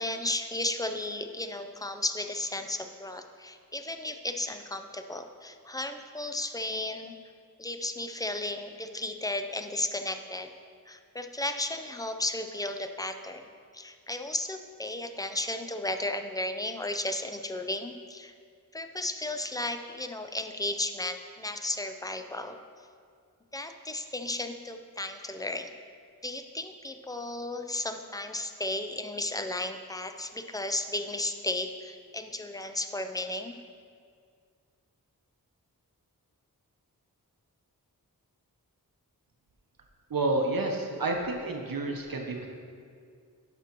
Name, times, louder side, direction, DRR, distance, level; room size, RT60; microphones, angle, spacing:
voice 1, 0.0-7.1 7.6-10.5 10.9-13.5 13.7-18.3 18.7-22.6 23.5-25.7 26.2-33.5, left 2 dB, 10° left, 7 dB, 0.4 m, -34 dB
voice 2, 40.1-42.5, right 2 dB, 70° right, 2 dB, 0.8 m, -29 dB
11.0 x 6.0 x 3.0 m, 2.2 s
wide cardioid pair, 60°, 36 cm